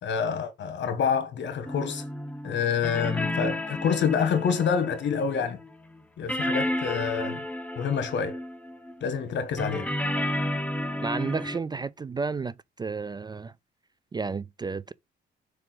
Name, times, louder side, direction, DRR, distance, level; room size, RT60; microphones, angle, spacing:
voice 1, 0.0-2.0 2.4-5.6 6.2-7.4 7.8-8.4 9.0-9.9, left 6 dB, 65° left, 1.4 m, -27 dB
sound 1, 1.7-6.0 6.3-9.1 9.6-11.6, left 1 dB, 5° left, 1.0 m, -32 dB
voice 2, 11.0-13.5 14.1-14.9, right 4 dB, 20° right, 0.3 m, -32 dB
4.8 x 4.5 x 6.0 m
cardioid pair, 90°, 20 cm